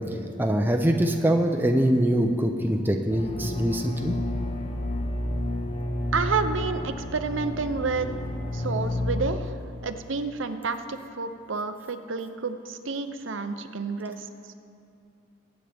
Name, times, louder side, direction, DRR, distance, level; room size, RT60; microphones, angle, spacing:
voice 1, 0.4-4.1, right 1 dB, 10° right, 4 dB, 0.6 m, -23 dB
sound 1, 3.1-9.4, left 1 dB, 30° left, 0.8 m, -30 dB
voice 2, 6.1-8.1 8.5-9.5 9.8-14.2, right 4 dB, 75° right, 9 dB, 0.7 m, -29 dB
23.0 x 9.2 x 3.5 m, 2.5 s
head